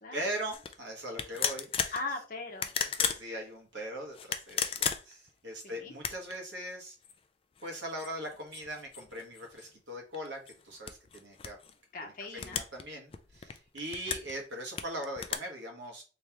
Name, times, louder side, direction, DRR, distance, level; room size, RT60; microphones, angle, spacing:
voice 1, 0.1-1.9 2.8-7.0 7.6-11.6 12.3-16.0, right 1 dB, 85° right, 1 dB, 1.2 m, -40 dB
sound 1, 0.5-0.7 1.2-2.0 2.5-3.2 4.1-5.3 5.9-6.4 7.0-7.1 7.6-9.7 10.1-11.7 12.4-12.8 13.1-14.3 14.8-15.4, left 7 dB, 30° left, 0.3 m, -34 dB
voice 2, 1.9-2.7 5.6-5.9 11.9-12.6, left 3 dB, 50° left, 2 dB, 0.9 m, -39 dB
3.5 x 3.2 x 2.8 m, 0.34 s
head